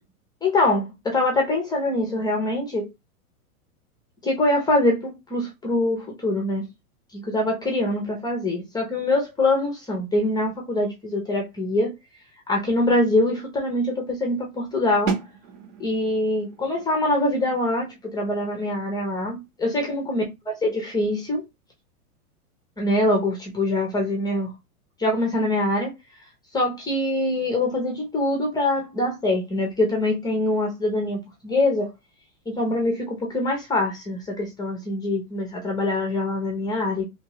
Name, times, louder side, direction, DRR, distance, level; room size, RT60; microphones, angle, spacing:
voice 1, 0.4-2.9 4.2-6.6 7.1-11.9 12.5-15.1 15.8-21.4 22.8-24.5 25.0-25.9 26.5-31.9 32.5-37.0, left 1 dB, 10° left, 0.6 m, -24 dB
sound 1, 15.1-20.8, right 6 dB, 75° right, 1.5 m, -35 dB
2.9 x 2.8 x 2.9 m
hypercardioid pair, 140°, 45 cm